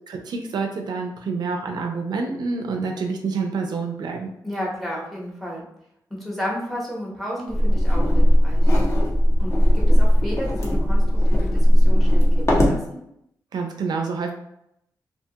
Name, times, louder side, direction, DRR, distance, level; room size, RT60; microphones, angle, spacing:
voice 1, 0.1-4.3 13.5-14.3, right 4 dB, 70° right, 3 dB, 0.4 m, -27 dB
voice 2, 4.4-5.7 6.1-8.7 9.4-13.0, equal, ahead, -3 dB, 0.8 m, -32 dB
sound 1, 7.5-12.8, equal, 40° left, 0.7 m, -17 dB
2.6 x 2.2 x 2.7 m, 0.78 s
wide cardioid pair, 120°, 7 cm